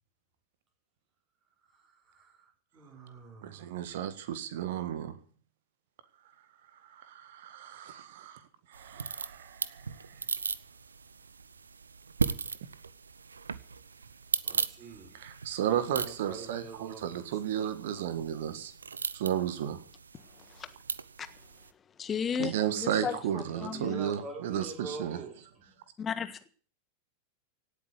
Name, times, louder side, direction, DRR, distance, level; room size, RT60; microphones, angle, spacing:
voice 1, 2.0-3.8 14.4-15.2 15.9-17.2 23.4-25.4, right 3 dB, 30° right, 5.4 m, -45 dB
voice 2, 3.4-5.2 6.9-8.4 8.7-10.0 15.1-18.7 19.1-19.8 22.4-25.2, right 10 dB, 55° right, 1.7 m, -33 dB
sound 1, 8.7-21.7, right 5 dB, 75° right, 0.7 m, -38 dB
voice 3, 22.0-24.0 26.0-26.5, left 7 dB, 20° left, 1.4 m, -34 dB
18.0 x 8.5 x 8.1 m
figure-of-eight pair, 90°, 0 cm